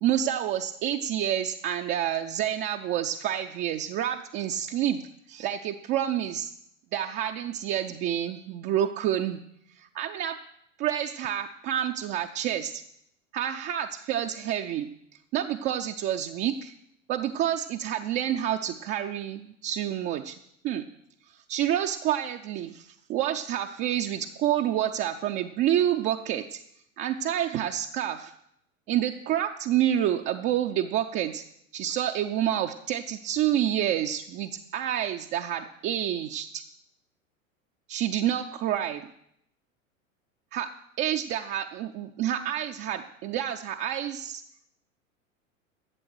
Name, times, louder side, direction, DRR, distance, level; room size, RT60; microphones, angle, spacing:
voice 1, 0.0-5.0 5.3-6.5 6.9-9.4 9.8-10.4 10.8-12.8 13.3-14.9 15.3-16.7 17.1-20.3 20.6-20.8 21.5-26.6 27.0-28.3 28.9-31.4 31.7-36.6 37.9-39.0 40.5-40.7 41.0-44.4, right 11 dB, 25° right, 4 dB, 0.5 m, -28 dB
12.0 x 7.8 x 6.2 m, 0.75 s
figure-of-eight pair, 90°, 41 cm